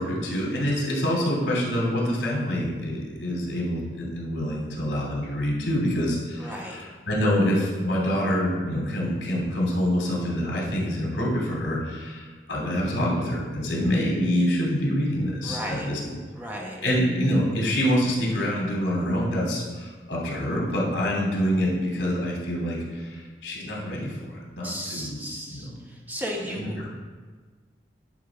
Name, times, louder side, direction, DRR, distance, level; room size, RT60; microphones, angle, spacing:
voice 1, 0.0-16.1 16.8-25.8 26.4-26.9, equal, 85° left, -3 dB, 2.6 m, -26 dB
voice 2, 6.4-6.8 15.4-15.9 16.3-16.8 24.6-26.8, equal, 10° right, -1 dB, 1.1 m, -35 dB
10.5 x 3.8 x 5.9 m, 1.4 s
head